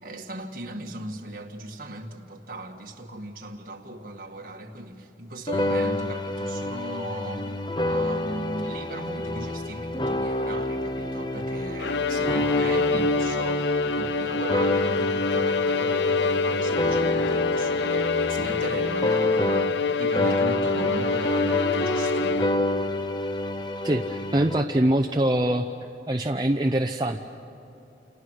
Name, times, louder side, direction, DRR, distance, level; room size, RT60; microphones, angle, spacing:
voice 1, 0.0-7.6 7.9-22.5, right 1 dB, 50° right, 1.9 m, -37 dB
sound 1, 5.5-19.9 20.2-24.6, left 1 dB, 25° left, 0.7 m, -28 dB
Bowed string instrument, 11.8-22.8, left 4 dB, 75° left, 0.6 m, -26 dB
voice 2, 23.8-25.7 26.1-27.2, right 1 dB, 25° right, 0.7 m, -23 dB
29.5 x 28.5 x 6.5 m
head